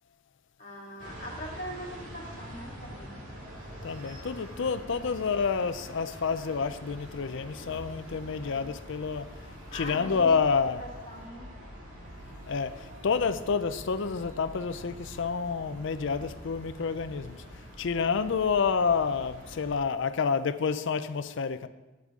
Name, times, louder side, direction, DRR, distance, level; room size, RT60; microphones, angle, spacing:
voice 1, 0.6-3.2 7.5-7.7 8.4-8.7 9.7-10.4 10.8-11.5, equal, 45° left, 2.7 m, -42 dB
sound 1, 1.0-19.8, equal, 85° right, 2.5 m, -45 dB
voice 2, 3.8-9.3 9.7-10.8 12.5-17.4 17.8-21.7, left 5 dB, 65° left, 0.5 m, -29 dB
11.5 x 8.8 x 3.7 m
head